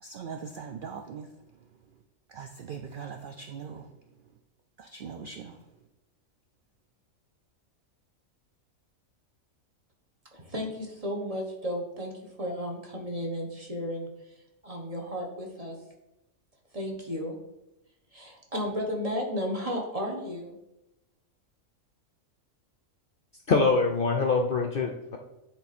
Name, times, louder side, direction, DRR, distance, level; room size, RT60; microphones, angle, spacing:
voice 1, 0.0-1.3 2.3-3.9 4.8-5.6, right 6 dB, 65° right, 6 dB, 0.5 m, -40 dB
voice 2, 10.3-12.1 12.4-14.1 14.6-15.8 16.7-17.3 18.1-20.6, equal, 30° right, 0 dB, 1.3 m, -33 dB
voice 3, 23.5-25.2, left 4 dB, 55° left, 4 dB, 0.6 m, -24 dB
9.4 x 3.8 x 4.2 m, 0.91 s
omnidirectional pair, 1.4 m